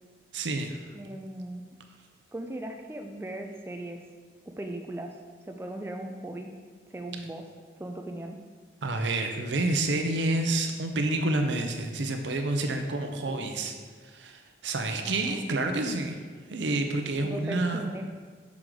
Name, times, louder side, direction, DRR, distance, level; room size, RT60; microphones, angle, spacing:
voice 1, 0.3-0.8 8.8-13.7 14.0-16.2 16.5-17.8, right 2 dB, 85° right, 5 dB, 0.6 m, -28 dB
voice 2, 0.9-1.6 2.3-4.0 4.6-5.2 5.4-6.5 6.9-7.5 7.8-8.4 13.2-13.4 15.0-15.4 17.2-18.2, right 1 dB, 15° right, 3 dB, 0.3 m, -38 dB
6.1 x 4.6 x 3.9 m, 1.5 s
head